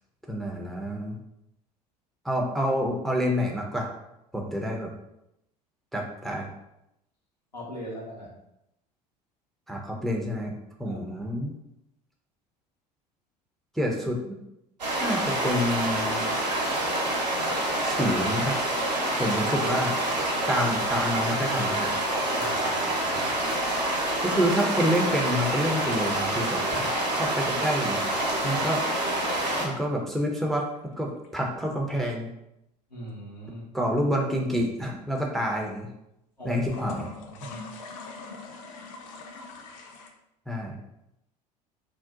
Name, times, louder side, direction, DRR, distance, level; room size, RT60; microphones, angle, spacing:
voice 1, 0.3-1.2 2.2-3.9 4.3-4.9 5.9-6.5 9.7-10.5 10.8-11.5 13.7-14.4 15.0-16.2 17.8-18.6 19.2-20.0 20.5-21.9 24.2-28.8 29.6-30.7 31.0-32.3 33.7-35.9 36.4-37.1 40.5-40.8, equal, ahead, -1 dB, 0.4 m, -28 dB
voice 2, 7.5-8.3 10.9-11.0 22.3-23.3 32.9-33.6 36.4-36.6 37.3-37.6, equal, 90° left, -5 dB, 0.8 m, -40 dB
sound 1, 14.8-29.7, right 1 dB, 80° right, 0.8 m, -27 dB
sound 2, 23.6-26.4 27.7-29.8 30.4-31.3 36.6-40.1, left 3 dB, 55° left, 0.5 m, -43 dB
2.6 x 2.0 x 3.6 m, 0.85 s
figure-of-eight pair, 70°, 21 cm